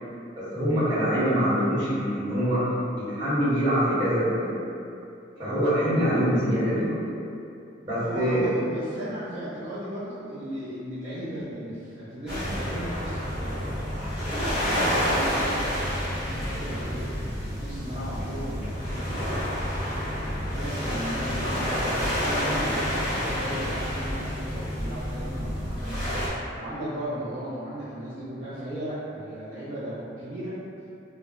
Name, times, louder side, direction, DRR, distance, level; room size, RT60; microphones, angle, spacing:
voice 1, 0.5-2.6 2.9-4.5 5.4-7.0 7.8-8.4, equal, 20° right, -14 dB, 1.1 m, -24 dB
voice 2, 8.0-19.3 20.1-26.1 26.5-30.6, equal, 40° right, -12 dB, 0.5 m, -36 dB
sound 1, 12.3-26.3, equal, 5° right, 0.7 m, -29 dB
2.2 x 2.1 x 3.6 m, 2.6 s
head